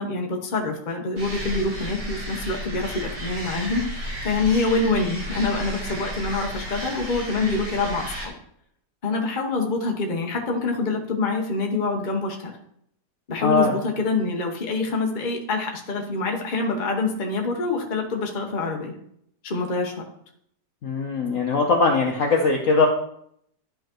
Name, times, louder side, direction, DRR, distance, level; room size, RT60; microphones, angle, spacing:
voice 1, 0.0-8.3 9.0-12.5 13.3-19.0 19.4-20.0, left 3 dB, 35° left, 1 dB, 0.9 m, -26 dB
sound 1, 1.2-8.3, equal, 35° right, 2.1 m, -33 dB
voice 2, 13.4-13.7 20.8-22.9, left 4 dB, 55° left, 0 dB, 1.1 m, -20 dB
11.5 x 5.6 x 3.0 m, 0.70 s
omnidirectional pair, 1.9 m